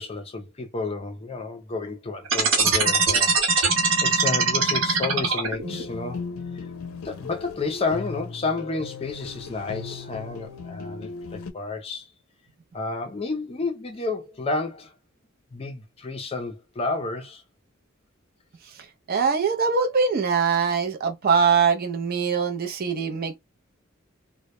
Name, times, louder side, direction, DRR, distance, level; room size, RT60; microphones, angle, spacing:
voice 1, 0.0-6.2 6.5-6.7 7.0-12.1 12.7-14.9 15.5-17.4, left 3 dB, 30° left, 0.4 m, -31 dB
sound 1, 2.3-5.8, right 4 dB, 65° right, 0.9 m, -21 dB
sound 2, 5.6-11.5, left 4 dB, 80° left, 0.5 m, -37 dB
voice 2, 19.1-23.4, right 5 dB, 45° right, 0.5 m, -22 dB
2.1 x 2.1 x 2.8 m
head